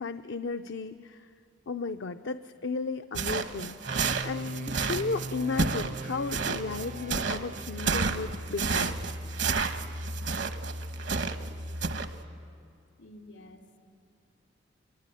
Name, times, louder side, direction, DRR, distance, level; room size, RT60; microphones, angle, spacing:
voice 1, 0.0-1.3 1.7-3.8 4.2-9.0, left 4 dB, 70° left, 8 dB, 0.6 m, -34 dB
sound 1, 3.1-11.5 11.8-12.1, right 4 dB, 70° right, 1.1 m, -30 dB
sound 2, 3.9-8.3, right 3 dB, 40° right, 0.6 m, -40 dB
sound 3, 6.2-12.6, left 1 dB, 90° right, 1.8 m, -41 dB
voice 2, 13.0-13.8, left 1 dB, 85° left, 4 dB, 2.7 m, -50 dB
26.0 x 23.0 x 9.1 m, 2.4 s
head